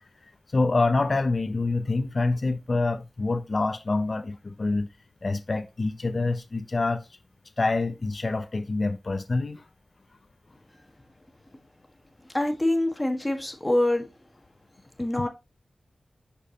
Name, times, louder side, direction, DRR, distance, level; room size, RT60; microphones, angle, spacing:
voice 1, 0.5-4.9 5.2-7.0 7.6-9.6, left 3 dB, 50° left, 0.7 m, -26 dB
voice 2, 12.3-14.1 15.0-15.3, left 1 dB, 20° left, 1.5 m, -25 dB
6.4 x 5.3 x 2.8 m
wide cardioid pair, 60°, 0 cm